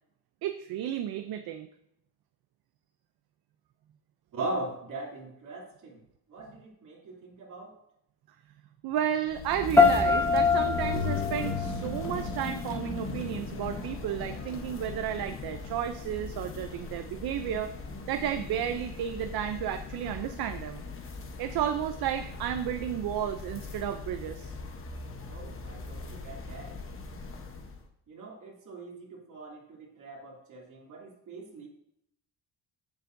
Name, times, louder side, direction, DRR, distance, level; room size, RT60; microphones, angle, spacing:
voice 1, 0.4-1.7 8.8-17.7 18.1-20.8 21.4-24.5, right 10 dB, 60° right, 8 dB, 0.6 m, -32 dB
voice 2, 4.3-6.0 6.3-7.7 25.3-26.7 28.1-31.7, right 2 dB, 45° right, -2 dB, 2.8 m, -40 dB
sound 1, 9.3-27.8, left 4 dB, 30° left, 1.0 m, -38 dB
sound 2, 9.8-12.8, left 4 dB, 5° left, 0.4 m, -25 dB
15.0 x 7.2 x 2.6 m, 0.74 s
cardioid pair, 175°, 42 cm